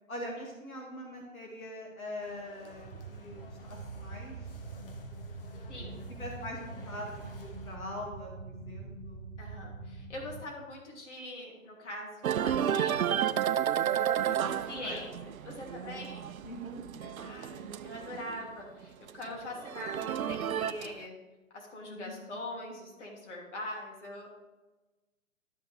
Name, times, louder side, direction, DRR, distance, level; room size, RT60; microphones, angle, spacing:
voice 1, 0.1-4.4 5.7-5.8 6.2-9.2 13.7-15.0 16.4-17.2 21.9-22.3, left 1 dB, 90° left, -1 dB, 2.3 m, -43 dB
sound 1, 2.2-7.8, left 3 dB, 40° left, 0.9 m, -55 dB
sound 2, 2.7-10.4, right 3 dB, 25° right, 1.8 m, -44 dB
voice 2, 5.7-6.2 9.4-13.1 14.3-16.3 17.2-21.1 21.5-24.3, left 1 dB, 55° left, -1 dB, 2.8 m, -43 dB
sound 3, 12.2-18.5 18.8-21.0, right 9 dB, 85° right, 0.6 m, -32 dB
12.0 x 5.8 x 3.3 m, 1.1 s
hypercardioid pair, 155°, 41 cm